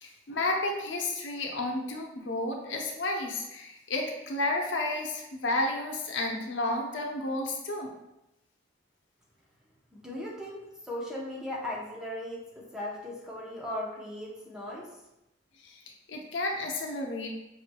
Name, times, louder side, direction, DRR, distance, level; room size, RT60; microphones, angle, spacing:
voice 1, 0.0-7.9 15.6-15.7 16.1-17.3, left 2 dB, 90° left, 1 dB, 0.7 m, -31 dB
voice 2, 9.9-14.9, left 1 dB, 5° right, -4 dB, 0.7 m, -38 dB
5.4 x 3.1 x 2.2 m, 0.91 s
head